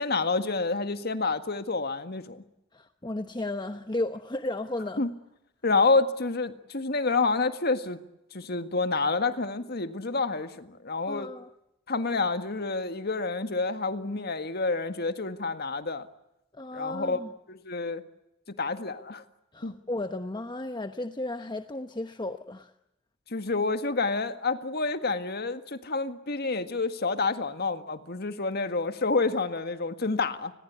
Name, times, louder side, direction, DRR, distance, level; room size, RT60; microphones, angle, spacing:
voice 1, 0.0-2.4 5.0-5.1 5.6-8.0 8.3-11.3 11.9-16.1 16.7-17.2 17.5-18.0 18.6-19.2 19.6-19.7 23.3-30.5, left 3 dB, 55° left, 1.8 m, -28 dB
voice 2, 2.7-5.1 11.1-11.5 16.5-17.3 19.5-22.7, left 2 dB, 25° left, 1.0 m, -34 dB
30.0 x 21.0 x 8.4 m
head